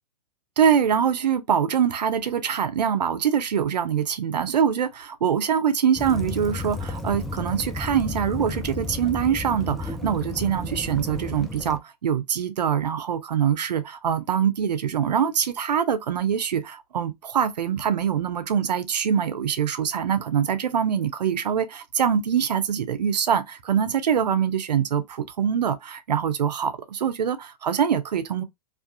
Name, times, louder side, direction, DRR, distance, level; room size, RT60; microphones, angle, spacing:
voice 1, 0.6-28.4, right 8 dB, 85° right, 0.5 m, -24 dB
Waves surf / Splash splatter / Trickle dribble, 6.0-11.8, left 2 dB, ahead, 0.3 m, -33 dB
2.4 x 2.3 x 2.4 m
hypercardioid pair, 115°, 21 cm